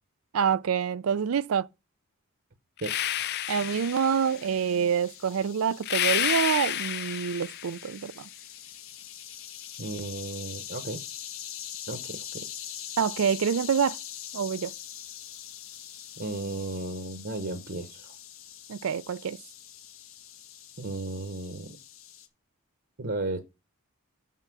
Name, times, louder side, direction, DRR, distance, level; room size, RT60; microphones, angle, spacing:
voice 1, 0.3-1.7 3.5-8.3 13.0-14.0 14.3-14.7 18.7-19.4, right 7 dB, 75° right, 0.4 m, -26 dB
sound 1, 2.8-4.5 5.8-7.9, left 12 dB, 50° left, 0.4 m, -30 dB
sound 2, 3.5-22.3, left 10 dB, 65° left, 1.1 m, -43 dB
voice 2, 9.8-11.0 11.9-12.4 16.2-18.1 20.8-21.8 23.0-23.4, right 2 dB, 55° right, 1.0 m, -34 dB
6.8 x 5.7 x 6.0 m
head